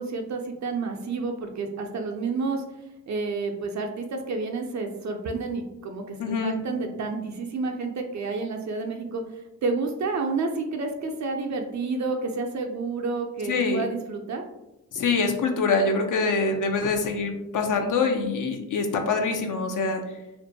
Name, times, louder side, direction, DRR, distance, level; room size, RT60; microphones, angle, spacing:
voice 1, 0.0-2.6 3.1-14.4, right 3 dB, 50° right, 3 dB, 0.4 m, -30 dB
voice 2, 6.2-6.6 13.5-13.8 14.9-20.0, left 4 dB, 55° left, 5 dB, 0.6 m, -25 dB
2.5 x 2.1 x 2.6 m, 0.94 s
supercardioid pair, 45°, 36 cm